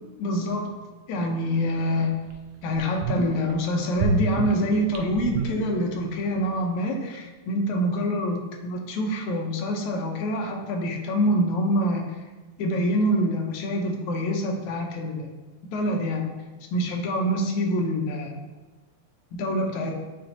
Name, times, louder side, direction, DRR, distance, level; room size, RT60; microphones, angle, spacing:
voice 1, 0.2-0.7 1.1-2.1 2.6-12.1 12.6-15.3 15.7-16.3 16.7-18.3 19.3-19.9, equal, 80° left, 2 dB, 2.1 m, -26 dB
sound 1, 1.7-1.8 2.3-2.4 2.7-3.5 4.0-6.2 6.5-6.6, right 3 dB, 85° right, 2.1 m, -28 dB
8.9 x 4.2 x 2.7 m, 1.2 s
omnidirectional pair, 3.4 m